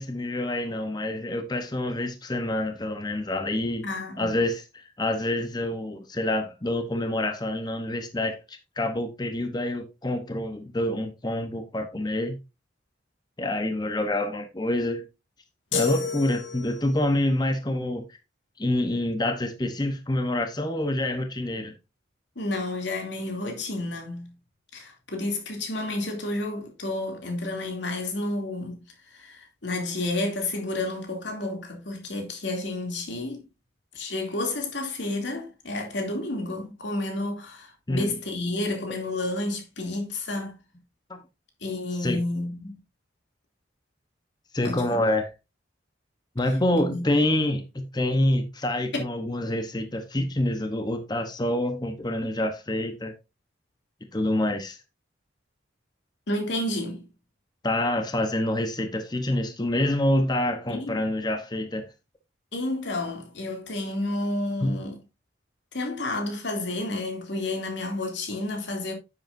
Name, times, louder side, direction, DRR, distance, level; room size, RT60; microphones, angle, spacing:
voice 1, 0.0-3.9 4.2-12.4 13.4-15.0 15.7-18.2 18.6-21.7 37.9-38.1 41.1-41.2 42.0-42.2 44.5-45.3 46.4-53.1 54.1-54.8 57.6-61.9 64.6-64.8, left 1 dB, 20° left, 0.8 m, -27 dB
voice 2, 3.8-4.3 22.4-24.3 24.7-33.4 33.9-40.6 41.6-42.8 44.6-45.0 46.8-47.0 56.3-57.1 60.7-61.0 62.5-65.0 65.7-68.9, left 2 dB, 70° left, 2.6 m, -31 dB
sound 1, 15.7-17.1, left 4 dB, 90° left, 2.1 m, -30 dB
9.6 x 7.9 x 2.6 m
head